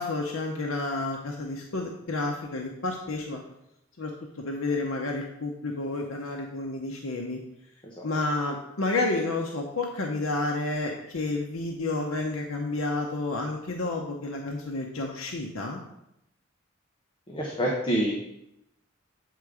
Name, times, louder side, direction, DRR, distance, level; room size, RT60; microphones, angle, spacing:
voice 1, 0.0-3.4 4.0-7.4 8.0-15.8, left 2 dB, 85° left, 1 dB, 0.8 m, -30 dB
voice 2, 17.3-18.1, right 1 dB, 25° left, -2 dB, 0.9 m, -27 dB
8.3 x 3.8 x 4.8 m, 0.82 s
head